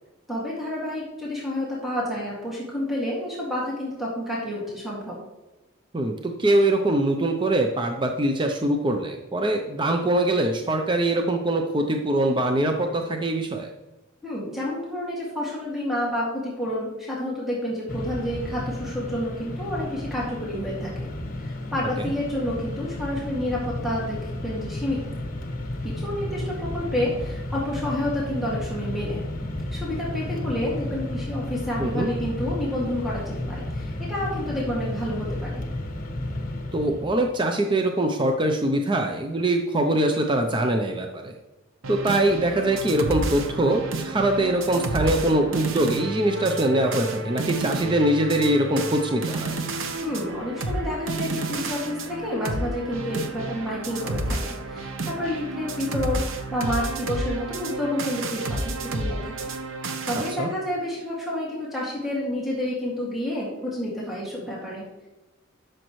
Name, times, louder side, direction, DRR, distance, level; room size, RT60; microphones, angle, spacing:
voice 1, 0.3-5.2 14.2-21.1 21.4-25.0 25.8-29.2 29.7-35.6 50.0-59.5 60.1-65.1, left 1 dB, ahead, -6 dB, 2.1 m, -29 dB
voice 2, 5.9-13.7 22.0-22.1 31.8-32.1 36.7-41.3 41.9-49.5 60.4-60.5, right 1 dB, 25° right, 4 dB, 0.6 m, -23 dB
Mechanisms, 17.9-37.3, left 1 dB, 45° left, 1.2 m, -32 dB
sound 1, 41.8-60.4, right 2 dB, 75° right, 0.9 m, -30 dB
12.0 x 6.5 x 3.1 m, 1.1 s
head